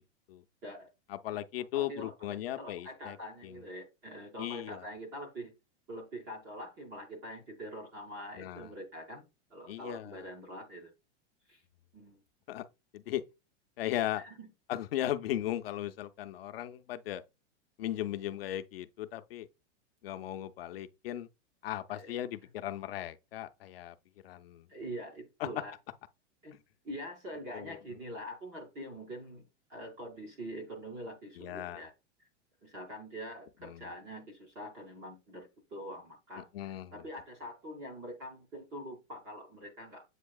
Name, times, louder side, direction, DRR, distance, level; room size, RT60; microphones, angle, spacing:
voice 1, 1.1-3.2 3.4-3.6 4.4-4.8 8.4-8.7 9.7-10.2 12.5-12.7 12.9-13.2 13.8-14.2 14.7-17.2 17.8-19.5 20.0-21.3 21.6-24.0 24.2-24.7 25.4-25.5 27.5-27.8 31.4-31.8 33.6-33.9 36.5-37.0, left 13 dB, 55° left, 0.5 m, -37 dB
voice 2, 1.7-5.5 5.9-10.9 11.5-11.6 11.9-12.2 14.1-14.5 21.9-22.2 24.7-25.7 26.4-26.5 26.8-31.9 32.6-40.0, equal, 10° right, 0.4 m, -44 dB
8.1 x 2.8 x 2.3 m
supercardioid pair, 175°, 35 cm